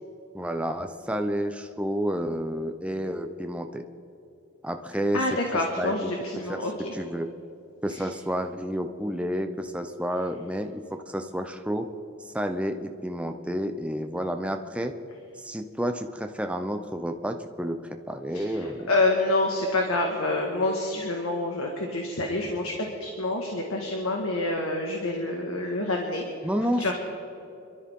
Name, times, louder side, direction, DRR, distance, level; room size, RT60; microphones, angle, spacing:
voice 1, 0.3-3.8 4.6-5.2 5.5-6.1 6.5-6.6 6.9-7.3 7.8-11.9 12.2-14.9 15.4-17.8 18.1-18.9 26.4-26.9, equal, 5° right, 5 dB, 0.7 m, -30 dB
voice 2, 5.1-6.9 7.9-8.1 18.3-26.2 26.8-26.9, left 2 dB, 80° left, 1 dB, 1.8 m, -27 dB
27.5 x 13.0 x 3.7 m, 2.7 s
head